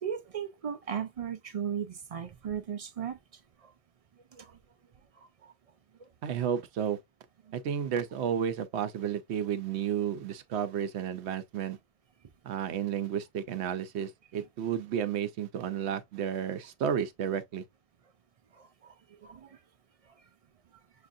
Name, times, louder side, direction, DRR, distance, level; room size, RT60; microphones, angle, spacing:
voice 1, 0.0-3.2 3.6-3.7 4.3-4.6 5.2-5.5 7.5-7.6 18.5-19.6, right 8 dB, 65° right, 0.3 m, -37 dB
voice 2, 6.2-7.0 7.5-11.8 12.4-17.6, right 8 dB, 80° right, 0.9 m, -32 dB
6.5 x 2.4 x 2.6 m
omnidirectional pair, 1.1 m